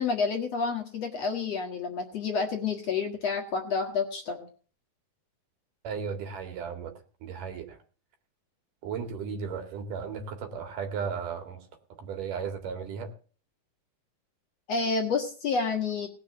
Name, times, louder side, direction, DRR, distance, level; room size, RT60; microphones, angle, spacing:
voice 1, 0.0-4.5 14.7-16.1, left 5 dB, 55° left, 3 dB, 2.3 m, -29 dB
voice 2, 5.8-6.9 7.2-7.8 8.8-11.6 12.0-13.1, right 6 dB, 65° right, 6 dB, 3.5 m, -35 dB
18.5 x 7.0 x 7.8 m, 0.41 s
omnidirectional pair, 4.2 m